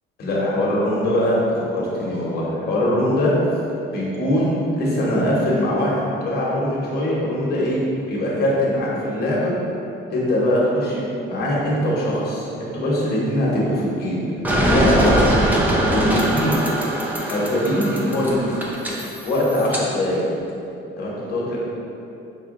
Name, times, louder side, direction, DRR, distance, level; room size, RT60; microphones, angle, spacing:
voice 1, 0.2-1.5 1.7-3.3 3.9-7.8 8.1-9.5 10.1-14.2 14.7-15.2 15.8-16.6 17.3-18.6 19.2-20.2 21.0-21.6, left 1 dB, 50° left, -5 dB, 1.0 m, -22 dB
sound 1, 14.4-19.8, right 1 dB, 10° right, 0.4 m, -22 dB
5.5 x 2.3 x 3.6 m, 2.8 s
cardioid pair, 170°, 21 cm